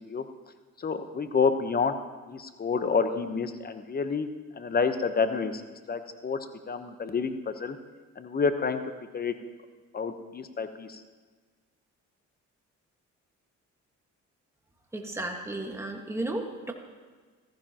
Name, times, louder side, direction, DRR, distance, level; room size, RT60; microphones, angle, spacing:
voice 1, 0.8-1.9 2.3-4.3 4.6-5.5 5.9-6.4 6.7-7.8 8.2-8.8 9.1-9.3 9.9-10.9, left 5 dB, 30° left, 9 dB, 1.0 m, -28 dB
voice 2, 14.9-16.7, right 2 dB, 10° right, 1 dB, 1.6 m, -34 dB
15.5 x 14.5 x 3.0 m, 1.4 s
cardioid pair, 90°, 30 cm